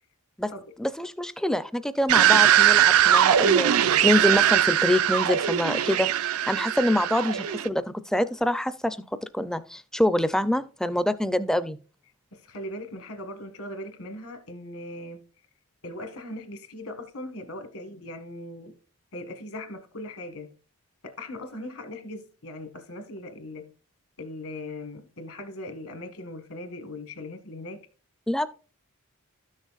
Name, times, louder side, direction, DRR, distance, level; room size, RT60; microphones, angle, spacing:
voice 1, 0.8-9.0 9.3-11.8 28.3-28.5, left 1 dB, 5° left, 0.4 m, -25 dB
sound 1, 2.1-7.7, right 10 dB, 70° right, 0.4 m, -20 dB
voice 2, 12.3-15.3 15.8-18.7 19.1-20.6 21.0-23.7 24.2-27.8, left 1 dB, 70° left, 1.4 m, -39 dB
13.0 x 6.4 x 2.4 m
head